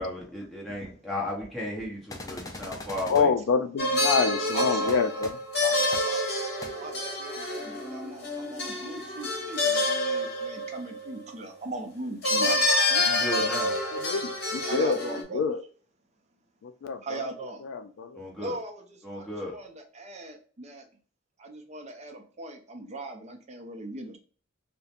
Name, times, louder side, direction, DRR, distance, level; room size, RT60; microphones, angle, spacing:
voice 1, 0.0-3.3 13.0-13.7 18.1-18.6 19.0-19.6, left 1 dB, ahead, 0.9 m, -35 dB
sound 1, 2.1-3.2 4.9-5.0 5.2-5.3 5.9-6.0 6.6-6.7, left 2 dB, 20° left, 0.5 m, -40 dB
voice 2, 3.1-5.4 12.4-12.6 12.9-13.0 14.0-15.0 15.3-15.6 16.8-18.2, left 5 dB, 85° left, 0.3 m, -27 dB
sound 2, 3.8-11.1 12.2-15.2, left 2 dB, 60° left, 0.9 m, -27 dB
voice 3, 4.5-5.3 5.6-6.2 6.8-12.5 14.6-15.4 17.0-17.7 18.4-20.9 21.4-24.2, right 2 dB, 35° right, 0.5 m, -39 dB
2.4 x 2.1 x 2.8 m
head